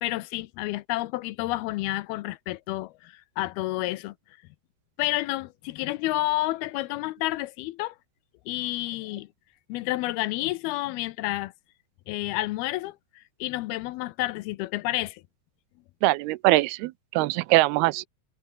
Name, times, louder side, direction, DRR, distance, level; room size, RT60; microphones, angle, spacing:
voice 1, 0.0-4.2 5.0-8.0 8.5-9.3 9.7-11.5 12.1-15.2, left 18 dB, 85° left, 2.6 m, -30 dB
voice 2, 16.0-18.1, right 19 dB, 85° right, 2.6 m, -22 dB
omnidirectional pair, 4.5 m